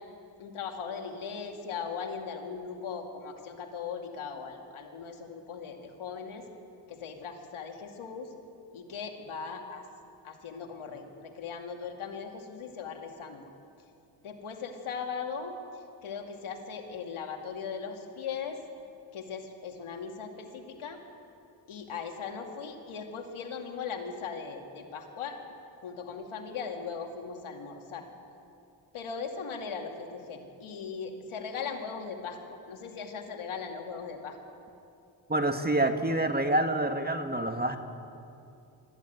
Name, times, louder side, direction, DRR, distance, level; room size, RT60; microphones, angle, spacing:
voice 1, 0.4-6.5 6.9-8.3 8.7-9.8 10.2-13.4 14.2-15.5 16.0-18.6 19.1-21.0 21.7-25.4 25.8-28.0 28.9-34.4, left 6 dB, 85° left, 3 dB, 2.4 m, -39 dB
voice 2, 35.3-37.8, right 1 dB, 20° right, 6 dB, 1.8 m, -27 dB
23.0 x 14.0 x 9.3 m, 2.6 s
cardioid pair, 60°, 48 cm